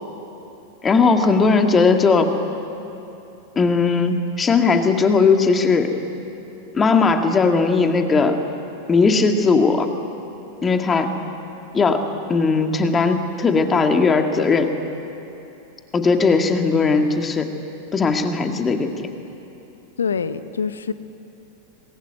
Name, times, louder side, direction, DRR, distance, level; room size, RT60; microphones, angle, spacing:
voice 1, 0.8-2.3 3.6-5.9 6.7-8.4 8.9-9.9 10.6-11.1 11.7-12.0 12.3-14.7 15.9-17.5 17.9-18.9, left 4 dB, 20° left, 5 dB, 2.0 m, -18 dB
voice 2, 20.0-20.9, left 6 dB, 70° left, 13 dB, 1.0 m, -25 dB
26.5 x 20.5 x 9.4 m, 2.9 s
figure-of-eight pair, 90°, 0 cm